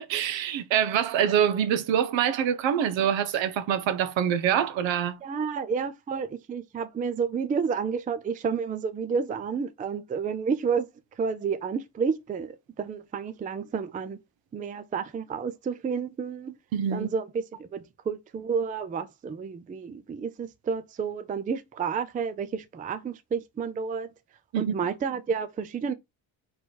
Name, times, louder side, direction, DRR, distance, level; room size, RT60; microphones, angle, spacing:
voice 1, 0.0-5.2 16.7-17.1 24.5-24.7, right 9 dB, 70° right, 1.0 m, -25 dB
voice 2, 5.2-10.9 11.1-14.2 14.5-16.5 16.9-24.1 24.6-25.9, right 6 dB, 20° right, 0.4 m, -30 dB
4.6 x 4.5 x 4.5 m
cardioid pair, 175°, 47 cm